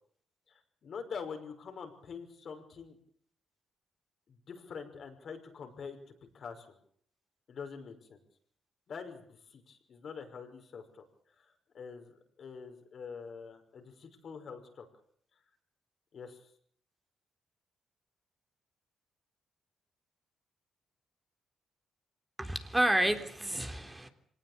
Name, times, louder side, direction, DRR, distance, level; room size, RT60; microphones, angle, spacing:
voice 1, 0.5-3.0 4.3-6.8 7.5-8.2 8.9-11.0 11.3-14.9 16.1-16.5, left 5 dB, 60° left, 5 dB, 5.9 m, -45 dB
voice 2, 22.4-24.1, right 1 dB, 15° right, 6 dB, 3.6 m, -30 dB
25.0 x 19.0 x 8.4 m, 0.62 s
hypercardioid pair, 50°, 0 cm